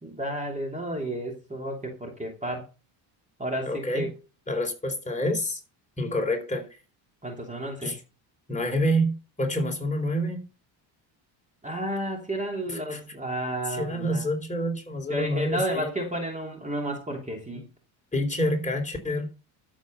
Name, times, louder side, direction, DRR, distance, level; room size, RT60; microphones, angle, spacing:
voice 1, 0.0-2.7 3.4-4.1 7.2-7.9 11.6-14.2 15.1-17.7, right 1 dB, 15° right, 2.8 m, -32 dB
voice 2, 3.6-4.1 4.5-5.6 6.0-6.7 7.8-8.0 8.5-10.4 12.7-13.0 13.7-15.9 17.5-17.6 18.1-19.3, equal, 15° left, 3.9 m, -27 dB
12.5 x 7.6 x 5.5 m
cardioid pair, 125°, 48 cm